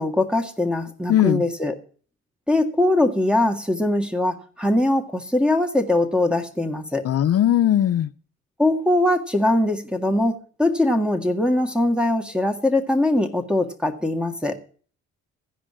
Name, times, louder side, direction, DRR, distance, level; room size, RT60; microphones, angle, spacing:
voice 1, 0.0-1.7 2.5-7.0 8.6-14.6, left 1 dB, 5° right, 1.8 m, -21 dB
voice 2, 1.1-1.4 7.0-8.1, left 11 dB, 50° left, 0.5 m, -18 dB
15.0 x 5.1 x 8.5 m
cardioid pair, 90°, 30 cm